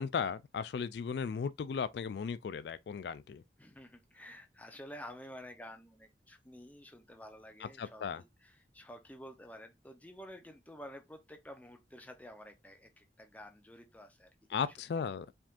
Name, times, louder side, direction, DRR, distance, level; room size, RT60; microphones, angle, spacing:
voice 1, 0.0-3.4 7.6-8.2 14.5-15.3, left 6 dB, 65° left, 0.3 m, -36 dB
voice 2, 3.6-14.7 15.0-15.1, equal, 10° left, 0.7 m, -51 dB
4.8 x 3.7 x 2.5 m
head